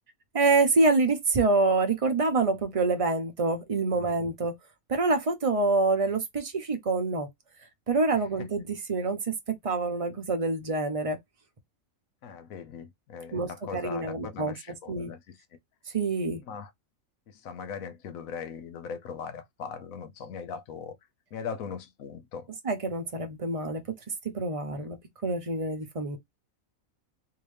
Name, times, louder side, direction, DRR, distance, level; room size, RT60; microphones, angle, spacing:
voice 1, 0.3-4.5 4.9-7.3 7.9-9.2 9.6-11.2 13.3-14.5 14.9-15.1 15.9-16.4 22.6-23.8 24.3-25.0 25.2-26.2, right 3 dB, 30° right, 0.8 m, -26 dB
voice 2, 12.2-15.4 16.5-16.7 17.3-21.0 21.3-22.5 24.7-24.9, left 6 dB, 75° left, 1.1 m, -39 dB
3.6 x 2.7 x 3.2 m
omnidirectional pair, 1.5 m